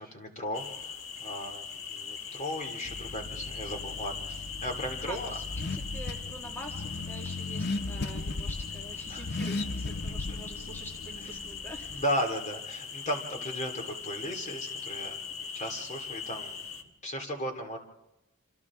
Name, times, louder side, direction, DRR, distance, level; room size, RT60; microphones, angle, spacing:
voice 1, 0.0-5.4 9.1-9.3 11.9-16.6 17.0-17.8, equal, 35° left, 4 dB, 2.5 m, -36 dB
sound 1, 0.5-16.8, left 6 dB, 70° left, 1.5 m, -40 dB
Car / Accelerating revving vroom, 2.8-12.0, left 2 dB, 50° left, 0.7 m, -37 dB
voice 2, 4.9-12.0, right 1 dB, 10° left, 0 dB, 2.0 m, -46 dB
27.0 x 27.0 x 3.6 m, 0.94 s
head